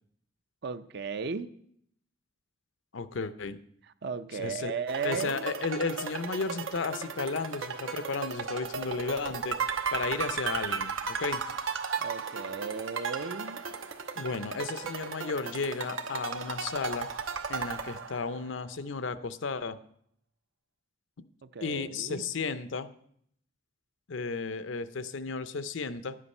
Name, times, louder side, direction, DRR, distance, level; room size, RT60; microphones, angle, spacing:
voice 1, 0.6-1.5 4.0-5.5 12.0-13.7 21.4-22.3, right 5 dB, 55° right, 12 dB, 0.5 m, -35 dB
voice 2, 2.9-3.6 4.3-4.7 5.0-9.6 9.9-11.4 14.2-17.1 17.5-19.8 21.6-22.9 24.1-26.2, left 4 dB, 65° left, 13 dB, 0.6 m, -34 dB
sound 1, 4.9-18.5, right 5 dB, 80° right, 1.0 m, -35 dB
11.0 x 8.5 x 5.4 m, 0.69 s
head